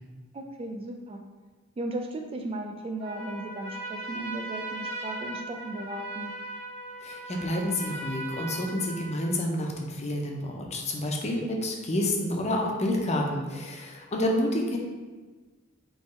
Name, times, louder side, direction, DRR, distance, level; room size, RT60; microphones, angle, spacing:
voice 1, 0.3-1.2 1.8-6.3 14.4-14.6, right 2 dB, 25° right, 3 dB, 0.3 m, -36 dB
Trumpet, 3.0-9.5, right 2 dB, 80° right, 1.0 m, -38 dB
voice 2, 7.0-14.8, left 1 dB, 30° left, 0 dB, 0.6 m, -29 dB
3.7 x 3.0 x 4.1 m, 1.3 s
head